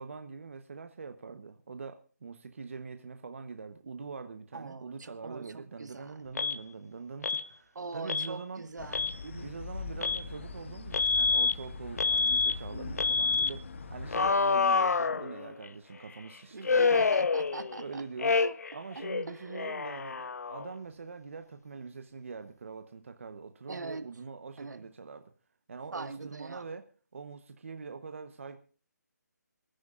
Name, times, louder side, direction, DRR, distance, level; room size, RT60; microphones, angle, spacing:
voice 1, 0.0-8.6 9.4-13.6 13.9-17.0 17.8-18.4 18.7-25.3 25.7-26.9 27.1-28.6, right 5 dB, 45° right, 1.0 m, -43 dB
voice 2, 4.5-6.3 7.7-9.5 16.5-18.0 18.3-18.5 19.3-19.6 23.7-24.0 24.6-24.8 25.9-26.7, right 3 dB, 75° right, 1.7 m, -42 dB
Alarm, 6.4-6.6 7.2-7.5 8.1-8.3 8.8-9.2 10.0-10.2 10.9-11.5 12.0-12.5 13.0-13.5 14.1-15.7 16.6-17.8 18.2-18.7 19.0-20.7, left 4 dB, 60° left, 0.6 m, -27 dB
sound 1, 8.8-14.3, left 4 dB, 40° left, 1.1 m, -42 dB
27.0 x 10.5 x 2.5 m
hypercardioid pair, 175°, 10 cm